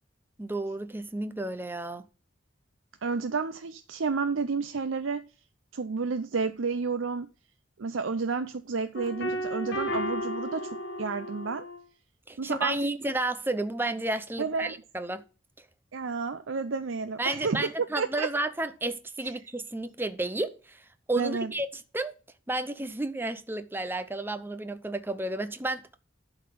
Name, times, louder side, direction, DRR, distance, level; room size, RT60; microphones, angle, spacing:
voice 1, 0.4-2.1 12.3-15.2 15.6-15.7 17.2-21.7 21.9-22.1 22.5-26.0, right 2 dB, 10° right, 0.7 m, -32 dB
voice 2, 3.0-5.2 5.7-7.3 7.8-11.6 12.4-12.7 14.4-14.7 15.9-17.7 18.0-18.3 19.2-19.3 21.2-21.5, right 4 dB, 80° right, 0.6 m, -31 dB
sound 1, 8.9-11.8, equal, 60° left, 1.7 m, -33 dB
11.5 x 4.0 x 6.8 m
head